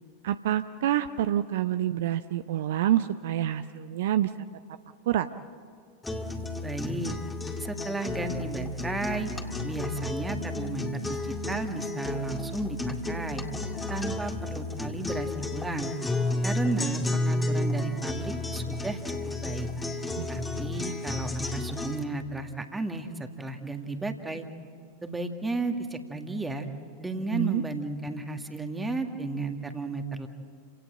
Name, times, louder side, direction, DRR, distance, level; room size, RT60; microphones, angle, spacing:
voice 1, 0.2-4.3 5.1-5.3 20.2-20.3 20.7-20.8 27.3-27.6, right 12 dB, 55° right, 11 dB, 0.7 m, -27 dB
sound 1, 6.0-22.0, left 2 dB, 10° left, 2.1 m, -32 dB
voice 2, 6.6-7.1 7.6-9.3 9.6-13.4 13.9-15.9 16.4-19.7 20.3-24.4 25.0-26.7 27.0-30.3, right 2 dB, 10° right, 6 dB, 2.0 m, -34 dB
29.5 x 17.5 x 7.8 m, 2.3 s
figure-of-eight pair, 90°, 0 cm